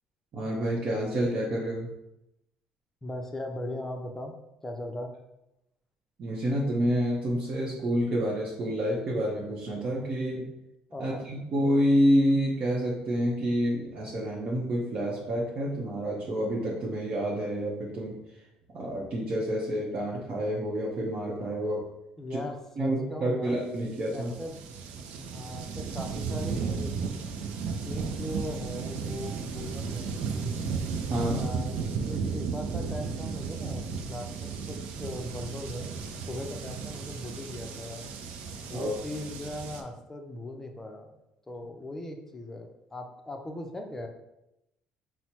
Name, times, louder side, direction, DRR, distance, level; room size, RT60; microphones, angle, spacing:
voice 1, 0.3-1.9 6.2-10.4 11.0-18.1 18.7-21.8 22.8-24.3 31.1-31.5 38.7-38.9, equal, 50° right, -4 dB, 0.8 m, -28 dB
voice 2, 3.0-4.4 4.6-5.1 10.9-11.2 22.2-23.6 24.1-24.5 25.2-27.3 27.8-30.6 31.3-31.8 32.0-36.0 36.3-38.0 38.7-41.1 41.5-44.1, left 1 dB, 15° left, 3 dB, 0.5 m, -39 dB
sound 1, 23.8-39.8, right 5 dB, 75° right, 0.5 m, -34 dB
4.3 x 2.1 x 4.3 m, 0.88 s
cardioid pair, 110°, 3 cm